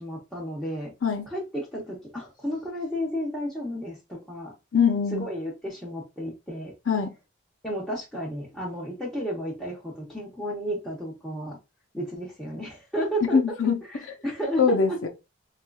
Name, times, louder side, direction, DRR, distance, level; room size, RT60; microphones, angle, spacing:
voice 1, 0.0-0.9 1.3-4.5 5.1-6.7 7.6-11.6 11.9-13.4 13.9-15.0, equal, 5° left, 0.7 m, -32 dB
voice 2, 4.7-5.3 6.9-7.1 13.3-13.8 14.6-15.1, left 6 dB, 90° left, 0.6 m, -22 dB
4.2 x 2.4 x 2.3 m
head